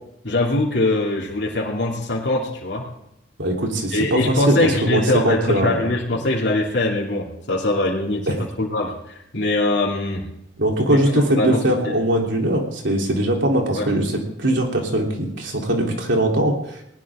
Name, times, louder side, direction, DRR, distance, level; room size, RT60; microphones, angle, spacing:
voice 1, 0.2-2.9 3.9-10.3 10.9-12.0 13.7-13.9, left 2 dB, 70° left, -5 dB, 2.8 m, -22 dB
voice 2, 3.4-5.9 8.3-8.4 10.6-16.6, right 1 dB, 80° right, 0 dB, 3.6 m, -21 dB
20.0 x 19.5 x 3.7 m, 0.79 s
head